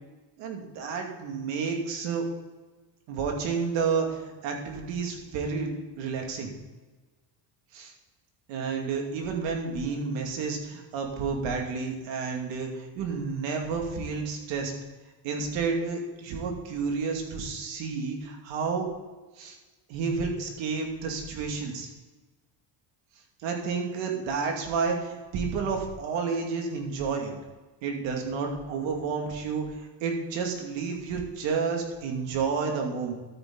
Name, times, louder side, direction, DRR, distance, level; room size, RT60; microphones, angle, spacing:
voice 1, 0.4-2.2 3.1-5.7 6.0-6.5 7.7-7.9 8.5-14.7 15.2-18.9 19.4-19.6 19.9-21.9 23.4-27.3 27.8-33.1, right 5 dB, 75° right, 1 dB, 2.6 m, -30 dB
13.0 x 9.3 x 4.0 m, 1.2 s
cardioid pair, 155°, 45 cm